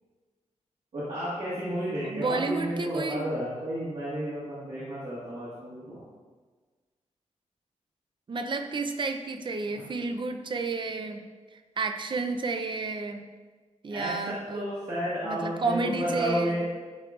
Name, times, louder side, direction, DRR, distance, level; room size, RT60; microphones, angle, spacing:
voice 1, 0.9-6.0 9.7-9.8 13.9-14.1 14.5-16.7, equal, 60° right, -10 dB, 1.6 m, -32 dB
voice 2, 2.0-3.3 8.3-11.2 11.5-13.3 13.8-14.7 15.2-16.6, right 3 dB, 40° right, 7 dB, 0.5 m, -31 dB
11.5 x 4.6 x 2.4 m, 1.4 s
wide cardioid pair, 155°, 12 cm